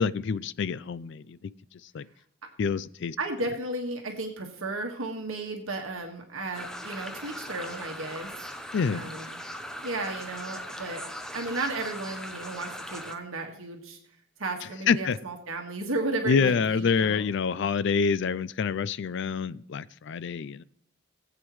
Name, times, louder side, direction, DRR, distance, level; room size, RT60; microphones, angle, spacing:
voice 1, 0.0-1.5 1.9-2.1 2.6-3.2 8.7-9.1 14.9-15.2 16.3-20.6, left 5 dB, 55° left, 18 dB, 0.4 m, -27 dB
voice 2, 3.2-8.3 8.9-9.4 9.8-11.0 11.3-14.0 14.4-17.2, right 2 dB, 70° right, 2 dB, 1.7 m, -34 dB
sound 1, 6.5-13.1, equal, 5° left, 0.6 m, -39 dB
19.0 x 8.1 x 3.1 m, 0.65 s
head